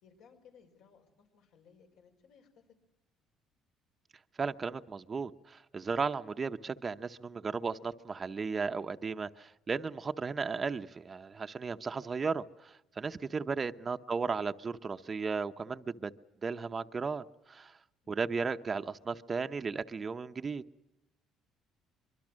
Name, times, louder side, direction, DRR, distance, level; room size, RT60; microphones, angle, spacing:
voice 1, 0.0-2.7 13.2-13.6, left 6 dB, 80° left, 3 dB, 5.4 m, -62 dB
voice 2, 4.4-16.1 16.4-17.8 18.1-20.6, right 5 dB, 25° right, 8 dB, 0.7 m, -35 dB
24.5 x 23.5 x 6.3 m, 0.91 s
cardioid pair, 145°, 0 cm